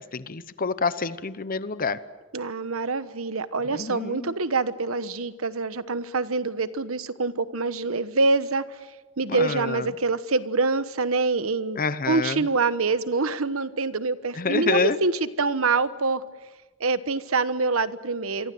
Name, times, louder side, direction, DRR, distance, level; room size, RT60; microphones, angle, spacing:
voice 1, 0.0-2.0 3.8-4.3 9.3-9.9 11.8-12.4 14.4-15.0, left 4 dB, 45° left, 14 dB, 0.9 m, -27 dB
voice 2, 2.3-8.6 9.2-16.2 16.8-18.5, right 3 dB, 80° right, 13 dB, 1.2 m, -25 dB
27.5 x 23.5 x 7.8 m, 1.2 s
head